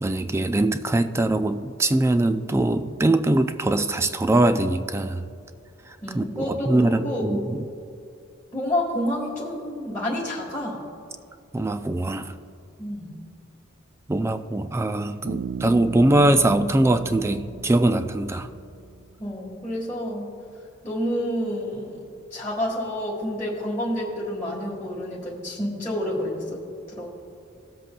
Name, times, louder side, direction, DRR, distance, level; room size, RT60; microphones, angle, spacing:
voice 1, 0.0-5.2 6.1-7.6 11.5-12.3 14.1-18.5, right 2 dB, 15° right, 10 dB, 0.3 m, -22 dB
voice 2, 6.0-7.3 8.5-10.8 12.8-13.1 19.2-20.2 20.8-22.0 22.3-26.6 26.9-27.1, left 1 dB, 15° left, -7 dB, 1.4 m, -29 dB
Bass guitar, 15.3-18.9, right 6 dB, 85° right, 0.5 m, -36 dB
17.5 x 7.6 x 2.2 m, 2.5 s
head